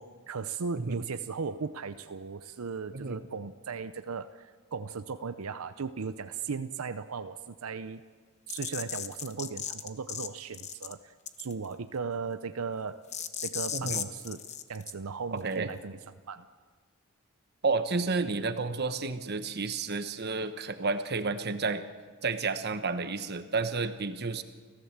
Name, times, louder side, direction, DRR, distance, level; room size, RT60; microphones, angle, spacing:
voice 1, 0.0-8.0 8.5-13.0 13.4-14.4 14.7-16.0 16.3-16.5, right 5 dB, 80° right, 11 dB, 0.6 m, -37 dB
sound 1, 8.5-10.3 10.5-10.9 11.3-11.6 13.1-14.9, left 8 dB, 30° left, 0.9 m, -36 dB
voice 2, 13.7-14.0 15.3-15.7 17.6-21.8 22.2-24.4, right 4 dB, 50° right, 10 dB, 1.1 m, -31 dB
30.0 x 14.5 x 7.3 m, 1.5 s
head